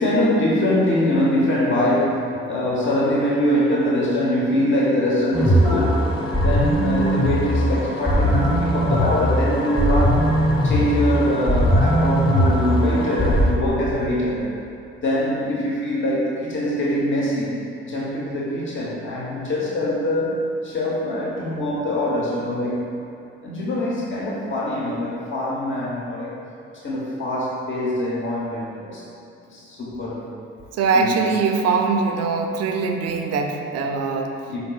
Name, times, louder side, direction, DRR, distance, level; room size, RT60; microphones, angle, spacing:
voice 1, 0.0-6.0 6.4-10.3 10.6-14.5 15.0-17.5 17.8-22.9 23.4-26.3 26.8-29.0 29.5-30.3 30.9-31.1 34.5-34.6, left 1 dB, 40° left, -5 dB, 0.9 m, -23 dB
sound 1, 5.3-13.5, equal, 15° left, 1.1 m, -20 dB
voice 2, 30.7-34.3, right 4 dB, 55° right, 4 dB, 0.5 m, -22 dB
5.2 x 3.9 x 2.3 m, 2.7 s
hypercardioid pair, 55°, 31 cm